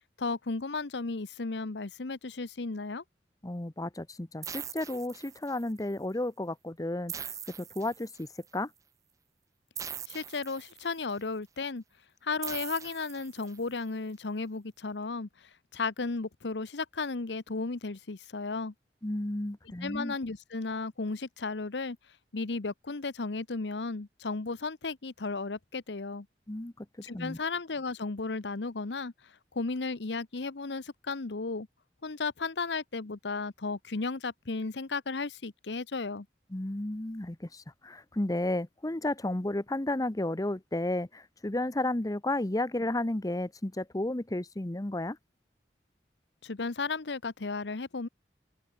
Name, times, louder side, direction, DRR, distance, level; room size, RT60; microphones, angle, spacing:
voice 1, 0.2-3.0 10.1-11.8 12.2-15.3 15.7-18.7 19.8-22.0 22.3-26.3 27.0-29.1 29.5-31.7 32.0-36.3 46.4-48.1, left 3 dB, 75° left, 0.9 m, -34 dB
voice 2, 3.4-8.3 8.5-8.7 19.0-20.1 26.5-26.9 27.1-27.4 36.5-45.2, left 1 dB, 20° left, 0.9 m, -33 dB
sound 1, 4.4-5.8 7.1-8.5 9.8-11.1 12.4-13.8, right 8 dB, 20° right, 0.4 m, -42 dB
head